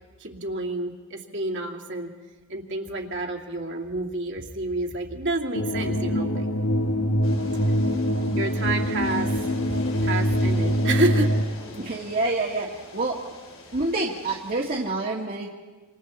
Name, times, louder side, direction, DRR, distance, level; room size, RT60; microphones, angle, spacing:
voice 1, 0.2-2.1 2.5-6.5 7.5-7.7 8.1-9.3 10.0-11.3, right 2 dB, 60° right, 0 dB, 2.7 m, -29 dB
sound 1, 5.5-11.4, equal, 85° left, 1.6 m, -24 dB
sound 2, 7.2-14.9, left 2 dB, 70° left, 3.3 m, -43 dB
voice 2, 11.8-13.2 13.7-15.5, right 2 dB, 45° right, -3 dB, 1.9 m, -27 dB
27.5 x 27.0 x 4.3 m, 1.3 s
head